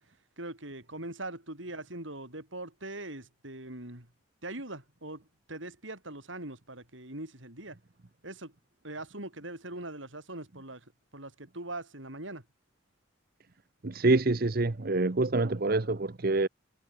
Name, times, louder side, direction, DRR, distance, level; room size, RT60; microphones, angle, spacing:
voice 1, 0.4-4.1 4.4-7.8 8.2-8.5 8.8-10.8 11.1-12.4, right 2 dB, 70° right, 7.6 m, -41 dB
voice 2, 13.8-16.5, right 2 dB, 50° right, 0.9 m, -26 dB
head